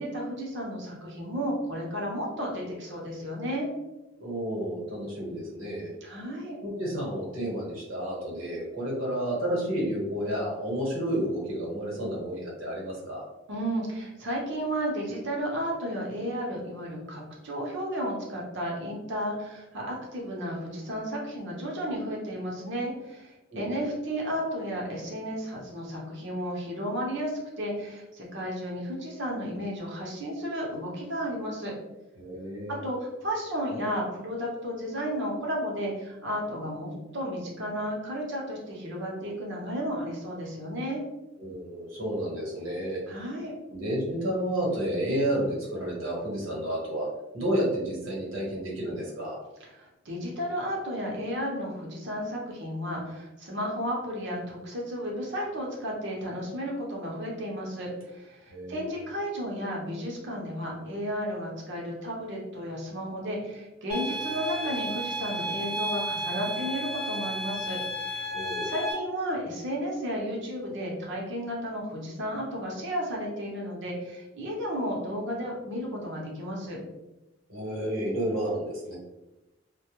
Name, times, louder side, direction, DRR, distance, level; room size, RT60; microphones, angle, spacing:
voice 1, 0.0-3.7 6.0-6.6 13.5-31.7 32.7-41.0 43.1-43.5 49.7-68.3 68.6-76.8, equal, 60° right, -2 dB, 0.7 m, -33 dB
voice 2, 4.2-5.9 6.6-13.2 23.5-23.6 32.2-32.8 41.4-43.3 43.7-47.1 47.3-49.3 58.5-58.9 68.3-68.7 77.5-78.9, right 1 dB, 75° right, -4 dB, 1.0 m, -31 dB
sound 1, 63.9-68.9, right 1 dB, 5° right, 0.7 m, -33 dB
2.2 x 2.0 x 2.9 m, 0.97 s
head